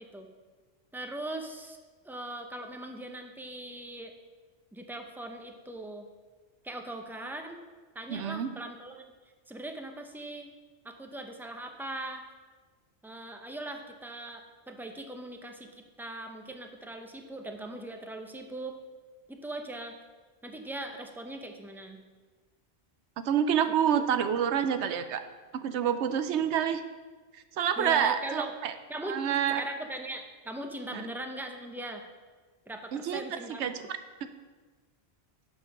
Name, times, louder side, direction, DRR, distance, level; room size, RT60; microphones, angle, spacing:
voice 1, 0.9-1.8 2.0-4.1 4.7-6.0 6.6-7.6 7.9-9.0 9.5-10.5 10.8-12.2 13.0-18.8 19.3-19.9 20.4-22.0 24.0-24.1 27.8-28.5 28.9-29.2 29.5-32.0 32.7-33.9, right 1 dB, 5° right, 4 dB, 0.4 m, -40 dB
voice 2, 8.1-8.5 23.2-25.2 25.5-26.8 27.3-28.7 29.1-29.6 30.9-31.1 32.9-33.7, right 8 dB, 85° right, 10 dB, 0.9 m, -28 dB
7.3 x 5.5 x 5.9 m, 1.4 s
omnidirectional pair, 1.1 m